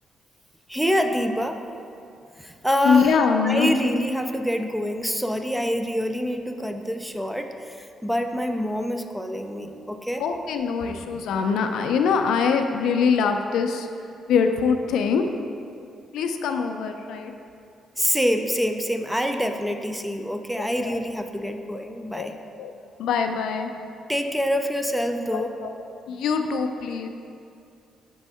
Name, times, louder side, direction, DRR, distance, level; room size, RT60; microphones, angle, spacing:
voice 1, 0.7-1.6 2.4-10.2 18.0-22.3 24.1-25.5, equal, ahead, 6 dB, 0.4 m, -26 dB
voice 2, 2.8-3.7 10.2-13.9 14.3-15.2 16.1-17.3 20.6-21.0 22.1-22.3 22.6-22.7 23.0-23.7 25.3-25.7 26.1-27.1, left 6 dB, 80° left, 6 dB, 0.4 m, -23 dB
5.3 x 3.5 x 5.5 m, 2.4 s
cardioid pair, 90°, 0 cm